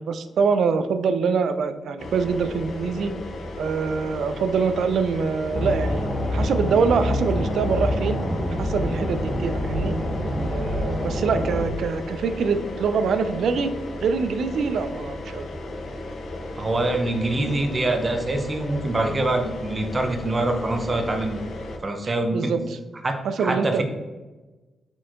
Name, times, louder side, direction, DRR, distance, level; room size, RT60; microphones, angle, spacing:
voice 1, 0.0-3.1 3.6-8.2 8.6-9.9 10.5-13.7 14.0-15.5 22.3-22.8 23.2-23.8, right 5 dB, 75° right, 10 dB, 0.3 m, -24 dB
sound 1, 2.0-21.8, left 2 dB, 75° left, 0.6 m, -35 dB
sound 2, 5.5-11.7, left 1 dB, 20° left, 0.9 m, -26 dB
voice 2, 16.6-21.4 21.8-22.5 23.0-23.8, right 2 dB, 30° right, 4 dB, 0.6 m, -25 dB
4.5 x 4.2 x 2.5 m, 1.2 s
cardioid pair, 100°, 0 cm